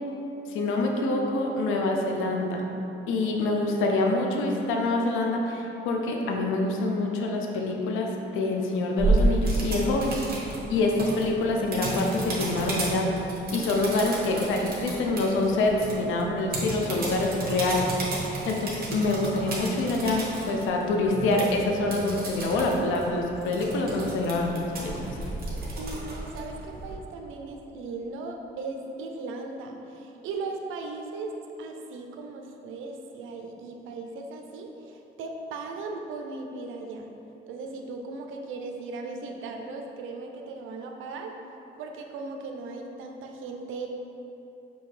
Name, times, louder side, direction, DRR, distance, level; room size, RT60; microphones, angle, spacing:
voice 1, 0.5-2.6 3.1-8.1 8.3-13.1 13.5-18.0 18.5-25.2, left 2 dB, 85° left, 1 dB, 0.5 m, -26 dB
voice 2, 3.4-3.8 16.8-17.1 25.8-31.3 31.6-37.1 37.5-41.4 41.8-43.9, right 3 dB, 80° right, 3 dB, 0.5 m, -38 dB
sound 1, 9.0-26.9, right 2 dB, 50° right, 1.1 m, -32 dB
5.2 x 2.8 x 3.2 m, 3.0 s
cardioid pair, 90°, 20 cm